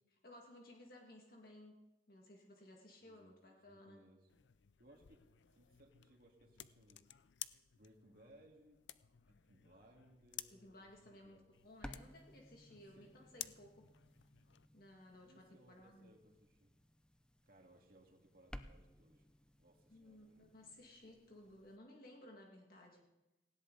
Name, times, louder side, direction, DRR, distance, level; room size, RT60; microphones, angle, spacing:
voice 1, 0.1-1.8 2.1-4.0 10.5-13.9 14.7-16.1 19.9-23.0, left 1 dB, 55° left, 0 dB, 2.0 m, -59 dB
voice 2, 3.1-4.3 4.8-5.3 5.5-7.0 7.7-8.8 9.4-11.6 12.7-13.1 15.2-16.7 17.5-19.2 19.6-21.1, right 1 dB, 55° right, 0 dB, 2.1 m, -66 dB
sound 1, 4.3-14.7, left 13 dB, 85° left, 0.5 m, -55 dB
sound 2, 11.5-21.8, equal, 5° left, 0.6 m, -58 dB
18.5 x 16.5 x 4.0 m, 1.0 s
head